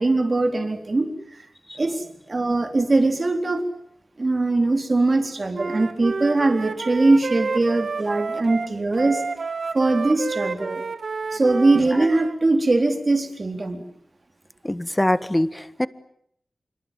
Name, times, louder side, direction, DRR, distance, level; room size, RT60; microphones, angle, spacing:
voice 1, 0.0-1.5 1.8-3.6 4.2-9.2 9.7-10.8 11.3-13.8, right 2 dB, 45° right, 6 dB, 4.0 m, -21 dB
Wind instrument woodwind instrument, 5.5-12.4, right 4 dB, 65° right, 1.5 m, -30 dB
voice 2, 14.6-15.9, left 1 dB, 15° left, 15 dB, 1.5 m, -23 dB
26.0 x 24.5 x 9.2 m, 0.69 s
wide cardioid pair, 70°, 0 cm